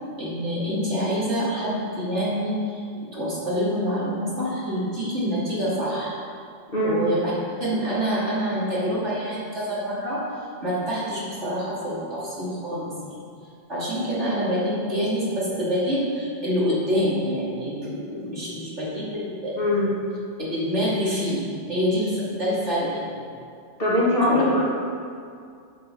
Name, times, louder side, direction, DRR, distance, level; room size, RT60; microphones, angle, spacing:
voice 1, 0.2-2.8 3.1-6.1 6.8-7.3 7.6-10.2 10.6-13.2 13.7-19.6 20.5-21.4 21.7-23.2 24.3-24.4, equal, 75° right, -8 dB, 3.2 m, -26 dB
voice 2, 19.6-19.9 23.8-24.7, left 1 dB, 50° left, -7 dB, 2.5 m, -21 dB
9.8 x 5.6 x 6.8 m, 2.3 s
omnidirectional pair, 1.2 m